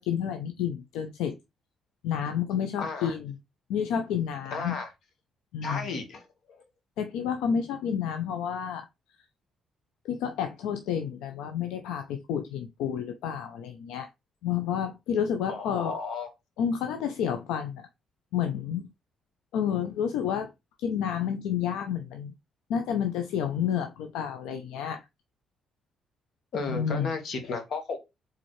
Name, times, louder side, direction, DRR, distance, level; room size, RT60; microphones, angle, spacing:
voice 1, 0.0-1.4 2.0-3.3 3.7-4.7 5.5-5.8 7.0-8.9 10.0-14.1 14.4-15.9 16.6-17.8 18.3-18.9 19.5-20.5 20.8-22.3 22.7-25.0 26.7-27.1, left 8 dB, 90° left, 0.5 m, -30 dB
voice 2, 2.8-3.1 4.5-4.9 5.6-6.2 6.5-6.6 15.5-16.3 26.5-28.0, left 4 dB, 65° left, 1.4 m, -33 dB
4.3 x 3.7 x 3.1 m
supercardioid pair, 70°, 0 cm